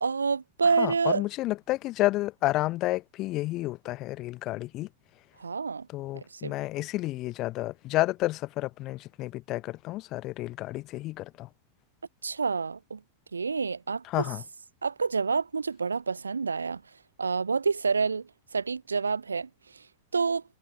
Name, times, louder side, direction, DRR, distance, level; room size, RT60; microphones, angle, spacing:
voice 1, 0.0-1.2 5.4-5.9 6.1-6.5 12.2-13.0 13.3-14.0 14.8-16.8 17.2-19.5 20.1-20.4, right 5 dB, 75° right, 0.7 m, -28 dB
voice 2, 0.8-4.9 5.9-11.5 14.0-14.4, left 17 dB, 35° left, 1.0 m, -30 dB
figure-of-eight pair, 90°, 0 cm